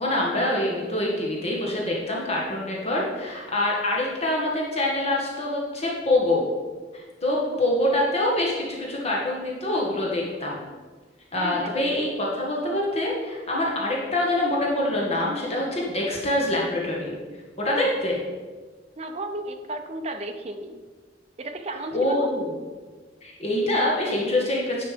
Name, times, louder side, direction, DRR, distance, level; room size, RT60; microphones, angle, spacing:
voice 1, 0.0-6.4 6.9-10.6 11.3-17.1 17.6-18.2 21.9-22.5 23.2-24.8, left 1 dB, 35° left, -3 dB, 1.6 m, -25 dB
voice 2, 11.3-11.8 19.0-20.8 21.4-22.3, right 1 dB, 35° right, 5 dB, 0.7 m, -33 dB
10.0 x 5.7 x 5.1 m, 1.4 s
head